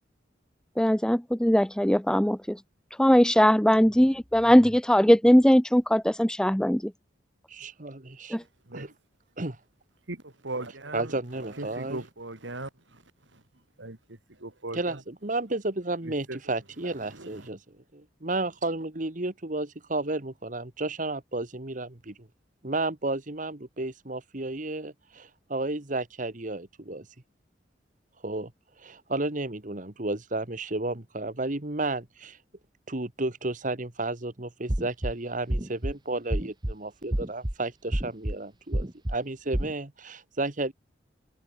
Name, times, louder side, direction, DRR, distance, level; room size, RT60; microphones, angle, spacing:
voice 1, 0.8-2.4 3.0-6.9 8.3-8.4, equal, 5° left, 0.6 m, -20 dB
voice 2, 7.5-8.4 8.7-8.9 9.4-9.6 10.9-12.0 14.7-17.6 18.2-22.3 22.6-27.1 28.2-28.5 28.8-32.4 32.9-40.7, right 2 dB, 45° right, 1.7 m, -32 dB
voice 3, 10.1-12.7 13.8-14.0 14.4-15.0 16.3-16.4 16.8-17.3, right 2 dB, 85° right, 3.1 m, -38 dB
sound 1, 34.7-35.1 35.5-35.9 36.3-36.7 37.1-37.5 37.9-38.3 38.7-39.1 39.5-39.7, right 1 dB, 25° right, 1.3 m, -28 dB
head